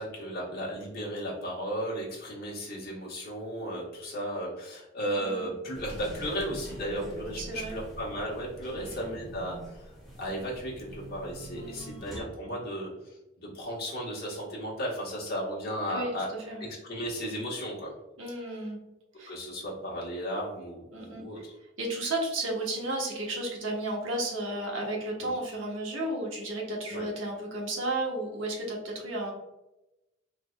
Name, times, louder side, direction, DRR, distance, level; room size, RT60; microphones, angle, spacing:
voice 1, 0.0-9.6 10.2-12.9 13.4-16.3 16.6-17.9 19.3-21.5 25.2-25.3 26.9-27.1, equal, 55° left, -5 dB, 1.3 m, -35 dB
voice 2, 5.1-5.5 7.4-7.8 8.7-9.1 11.6-12.0 15.9-16.6 18.2-18.8 19.2-19.4 20.9-21.4 21.8-29.3, right 1 dB, 80° right, -1 dB, 1.1 m, -33 dB
sound 1, 5.7-12.2, right 1 dB, ahead, 1.1 m, -44 dB
3.6 x 3.2 x 2.3 m, 0.95 s
head